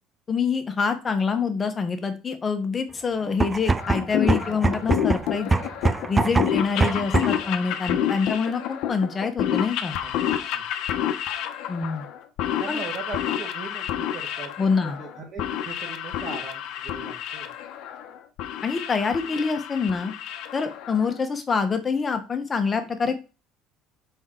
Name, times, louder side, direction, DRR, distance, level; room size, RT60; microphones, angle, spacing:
voice 1, 0.3-5.5 6.1-8.6 8.9-10.0 11.7-12.1 12.7-12.8 14.6-15.0 18.6-20.1 20.5-23.2, left 5 dB, 25° left, 7 dB, 1.0 m, -26 dB
sound 1, 3.3-7.5, right 3 dB, 15° right, 0.3 m, -24 dB
sound 2, 3.8-21.2, left 10 dB, 65° left, 0.8 m, -29 dB
voice 2, 10.0-10.6 12.6-14.5 15.0-17.5, right 4 dB, 35° right, -2 dB, 1.5 m, -39 dB
6.1 x 4.5 x 3.8 m, 0.33 s
cardioid pair, 140°, 0 cm